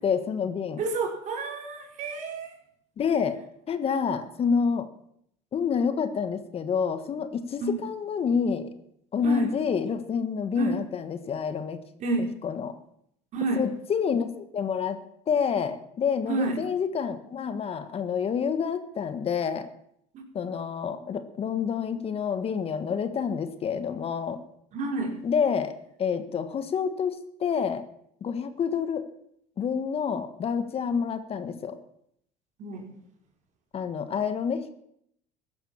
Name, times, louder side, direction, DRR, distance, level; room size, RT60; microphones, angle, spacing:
voice 1, 0.0-0.8 3.0-3.4 3.7-4.9 5.5-8.7 9.1-11.8 12.4-12.7 13.6-15.0 15.3-19.7 20.3-24.4 25.2-25.7 26.0-27.8 28.2-29.0 29.6-31.8 33.7-34.7, left 6 dB, 40° left, 10 dB, 1.5 m, -28 dB
voice 2, 0.8-2.5 7.6-7.8 9.2-9.5 10.6-10.8 12.0-12.3 13.3-13.7 16.3-16.6 20.1-20.2 24.7-25.2 32.6-32.9, right 3 dB, 50° right, 2 dB, 5.0 m, -30 dB
15.0 x 12.0 x 7.2 m, 0.72 s
supercardioid pair, 95°, 15 cm